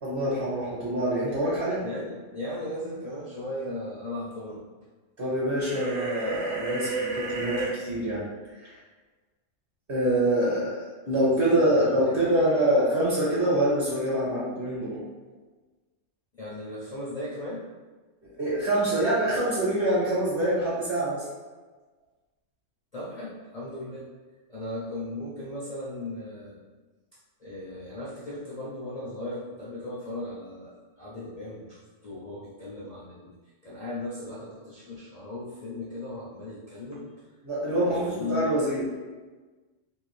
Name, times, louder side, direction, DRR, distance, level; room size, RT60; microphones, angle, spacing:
voice 1, 0.0-1.8 5.2-8.2 8.6-8.7 9.9-15.0 18.4-21.3 37.4-38.8, right 1 dB, 50° right, -7 dB, 1.0 m, -25 dB
voice 2, 1.8-4.7 11.6-12.4 16.4-17.7 22.9-24.1 24.5-26.6 27.4-33.3 33.6-37.3 37.8-38.4, left 1 dB, 65° left, -7 dB, 0.3 m, -37 dB
sound 1, 5.6-7.7, right 3 dB, 80° right, 1.1 m, -31 dB
2.7 x 2.4 x 3.1 m, 1.3 s
omnidirectional pair, 1.3 m